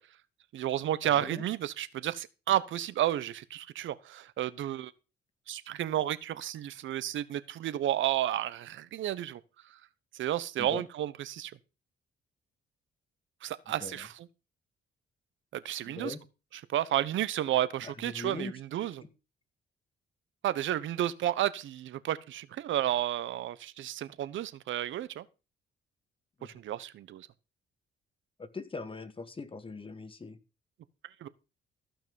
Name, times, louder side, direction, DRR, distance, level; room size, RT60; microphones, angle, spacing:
voice 1, 0.5-4.9 5.5-9.4 10.2-11.5 13.4-14.3 15.5-16.1 16.7-19.0 20.4-25.2 26.4-27.3 31.2-31.3, right 12 dB, 75° right, 1.1 m, -32 dB
voice 2, 15.8-16.2 17.8-18.5 26.4-26.5 28.4-30.4, left 3 dB, 25° left, 1.9 m, -41 dB
15.0 x 6.1 x 7.1 m
cardioid pair, 90°, 20 cm